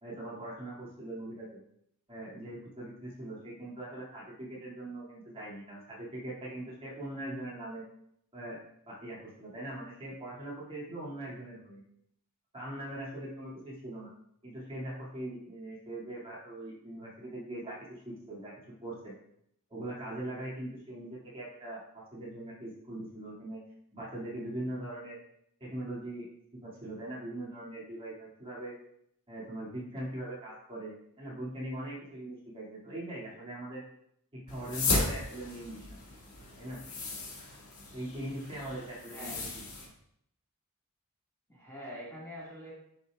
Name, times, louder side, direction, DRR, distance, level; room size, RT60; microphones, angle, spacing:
voice 1, 0.0-1.6 2.1-7.8 8.3-8.6 8.9-11.8 12.5-14.1 14.4-18.5 18.8-19.1 19.7-23.6 23.9-25.2 25.6-26.3 26.6-28.8 29.3-33.8 34.3-35.9 36.6-36.8 37.9-39.3, right 1 dB, 25° right, -7 dB, 2.4 m, -41 dB
sound 1, 34.5-39.9, left 2 dB, 75° left, 1.9 m, -35 dB
voice 2, 39.1-39.6 41.5-42.7, equal, 10° left, -7 dB, 2.0 m, -44 dB
10.5 x 5.5 x 2.4 m, 0.72 s
head